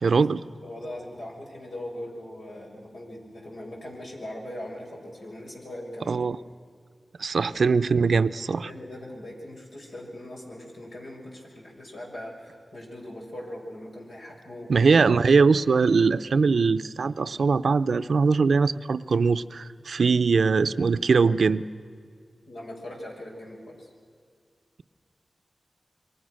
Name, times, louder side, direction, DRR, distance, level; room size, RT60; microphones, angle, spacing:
voice 1, 0.0-0.4 6.1-6.4 7.2-8.7 14.7-21.7, right 4 dB, 80° right, 13 dB, 0.6 m, -21 dB
voice 2, 0.6-6.2 8.6-14.7 22.5-23.9, left 1 dB, 85° left, -1 dB, 6.3 m, -40 dB
27.5 x 23.0 x 6.5 m, 2.2 s
wide cardioid pair, 60°, 0 cm